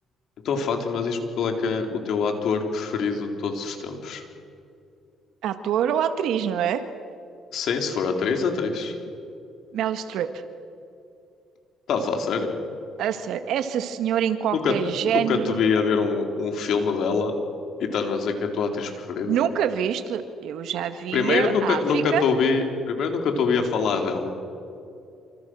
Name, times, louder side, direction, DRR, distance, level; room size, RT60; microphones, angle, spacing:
voice 1, 0.4-4.2 7.5-8.9 11.9-12.5 14.5-14.7 15.0-17.3 17.8-19.4 21.1-24.4, left 5 dB, 70° left, 3 dB, 4.0 m, -25 dB
voice 2, 5.4-6.8 9.7-10.3 13.0-15.6 19.3-22.3, right 9 dB, 80° right, 9 dB, 1.8 m, -25 dB
28.5 x 26.5 x 6.4 m, 2.6 s
cardioid pair, 90°, 0 cm